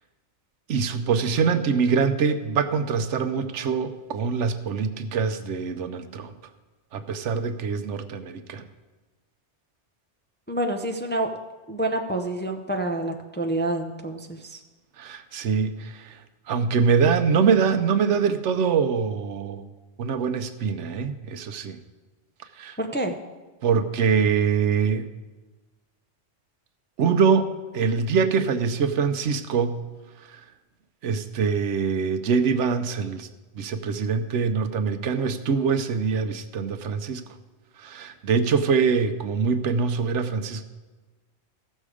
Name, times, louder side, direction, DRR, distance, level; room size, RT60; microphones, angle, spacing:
voice 1, 0.7-6.3 6.9-8.6 15.0-16.2 16.5-19.6 20.0-21.8 22.4-22.8 23.6-25.1 27.0-29.8 30.3-30.4 31.0-33.3 33.5-37.2 37.8-40.6, right 5 dB, 80° right, 9 dB, 1.0 m, -24 dB
voice 2, 10.5-11.3 11.7-14.6 22.8-23.2, right 1 dB, 15° left, 4 dB, 0.4 m, -28 dB
15.0 x 6.4 x 4.9 m, 1.2 s
omnidirectional pair, 1.2 m